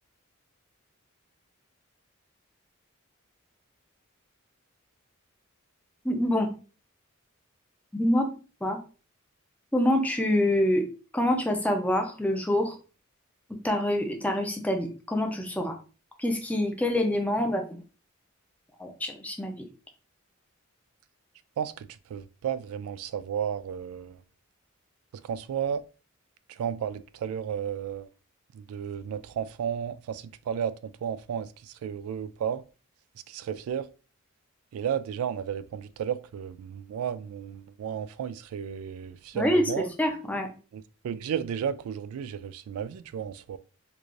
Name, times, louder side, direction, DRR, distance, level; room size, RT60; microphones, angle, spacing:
voice 1, 6.0-6.5 7.9-8.8 9.7-12.8 13.5-15.8 16.2-17.8 18.8-19.7 39.3-40.5, left 1 dB, 5° left, 0.6 m, -26 dB
voice 2, 21.6-24.2 25.2-25.8 26.5-28.1 28.5-32.6 33.3-33.9 34.7-39.9 41.0-43.6, right 8 dB, 90° right, 0.3 m, -33 dB
4.6 x 2.6 x 2.4 m
head